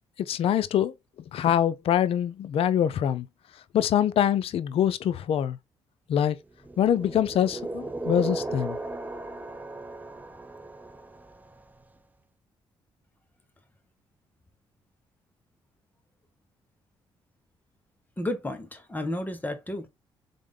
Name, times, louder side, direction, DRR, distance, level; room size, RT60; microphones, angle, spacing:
voice 1, 0.2-0.9 1.3-3.3 3.7-5.6 6.1-6.4 6.8-8.8, left 10 dB, 70° left, 0.5 m, -24 dB
sound 1, 6.6-11.6, right 2 dB, 15° right, 0.7 m, -36 dB
voice 2, 18.2-19.9, left 1 dB, 15° left, 1.5 m, -32 dB
3.6 x 3.6 x 3.7 m
supercardioid pair, 70°, 10 cm